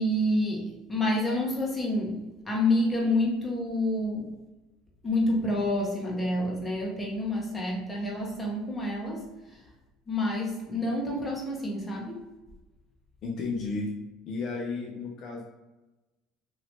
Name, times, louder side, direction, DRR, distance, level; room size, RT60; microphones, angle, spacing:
voice 1, 0.0-4.3 5.0-9.6 10.1-12.2, left 1 dB, 15° left, -3 dB, 1.1 m, -28 dB
voice 2, 13.2-13.9 14.3-15.4, left 3 dB, 60° left, -1 dB, 0.6 m, -33 dB
2.9 x 2.7 x 3.1 m, 1.1 s
supercardioid pair, 85°, 0 cm